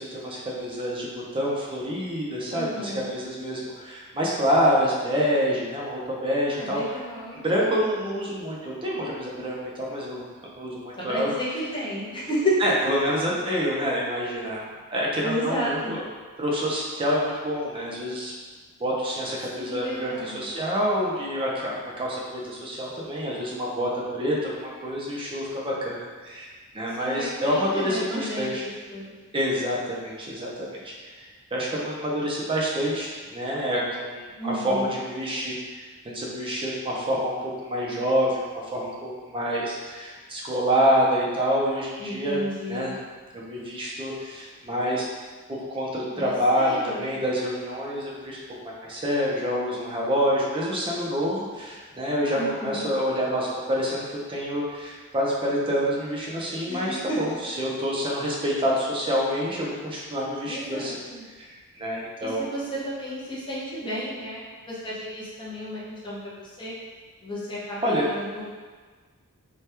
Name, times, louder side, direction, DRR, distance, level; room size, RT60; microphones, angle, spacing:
voice 1, 0.0-6.9 7.3-11.3 12.6-14.6 14.9-16.0 16.4-18.3 18.8-26.0 26.2-26.5 26.7-28.7 29.3-31.1 31.5-37.3 37.6-42.4 42.7-42.9 43.5-45.0 45.5-48.4 48.6-61.0 61.4-62.4 67.8-68.1, equal, 25° right, -4 dB, 0.5 m, -27 dB
voice 2, 2.5-3.1 6.6-7.4 11.0-12.7 15.2-16.0 19.5-20.4 27.0-28.5 28.9-29.0 34.4-34.9 42.0-43.0 46.2-47.1 52.4-52.9 56.7-57.2 60.5-61.2 62.2-66.7 67.2-68.4, equal, 20° left, -7 dB, 0.7 m, -32 dB
2.9 x 2.3 x 3.3 m, 1.4 s
head